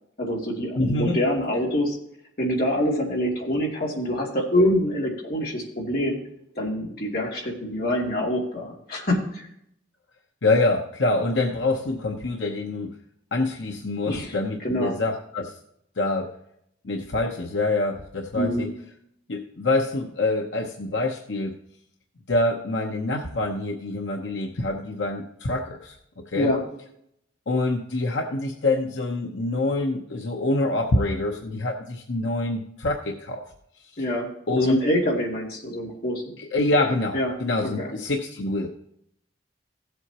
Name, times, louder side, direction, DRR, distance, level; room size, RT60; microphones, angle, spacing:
voice 1, 0.2-2.0 2.4-6.2 6.5-9.5 14.1-14.3 14.6-15.0 18.3-18.7 26.3-26.6 34.0-34.3 34.6-36.4 37.1-37.3 37.8-37.9, equal, 55° left, -3 dB, 2.7 m, -25 dB
voice 2, 0.7-1.2 10.4-13.0 13.3-15.6 16.0-16.3 16.8-18.7 19.3-21.5 22.3-26.0 26.3-26.5 27.5-33.4 33.8-34.0 34.5-34.8 36.4-38.7, left 2 dB, 85° left, 2 dB, 0.9 m, -25 dB
15.5 x 7.9 x 2.9 m, 0.74 s
head